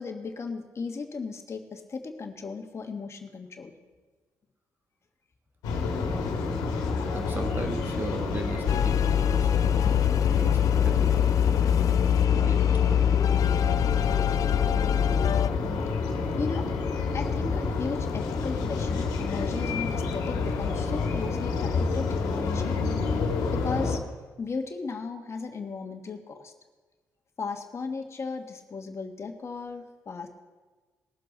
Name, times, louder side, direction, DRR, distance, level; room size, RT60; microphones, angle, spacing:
voice 1, 0.0-3.7 16.4-16.7 17.1-22.8 23.5-24.0 24.4-26.5 27.4-30.3, left 4 dB, 45° left, 4 dB, 1.6 m, -36 dB
sound 1, 5.6-24.0, left 4 dB, 85° left, 1.8 m, -29 dB
voice 2, 7.1-9.9 10.3-11.3 12.3-13.3, right 2 dB, 30° right, 4 dB, 1.7 m, -38 dB
sound 2, 8.7-15.5, left 9 dB, 65° left, 0.4 m, -24 dB
20.5 x 7.6 x 4.0 m, 1.3 s
supercardioid pair, 60°, 6 cm